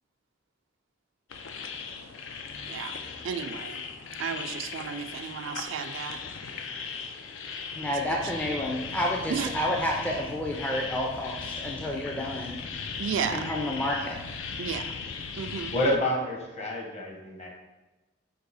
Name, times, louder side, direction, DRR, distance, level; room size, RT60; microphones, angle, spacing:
sound 1, 1.3-16.0, left 5 dB, 90° left, 0.4 m, -38 dB
voice 1, 3.2-3.8 4.2-6.2 9.3-9.5 13.0-13.5 14.6-14.9 15.4-15.7, right 7 dB, 80° right, 9 dB, 0.3 m, -33 dB
voice 2, 7.7-12.6 13.3-14.2, left 1 dB, 10° left, -1 dB, 0.3 m, -30 dB
voice 3, 15.7-17.5, left 1 dB, 35° left, 0 dB, 0.8 m, -28 dB
4.7 x 2.7 x 4.0 m, 1.1 s
head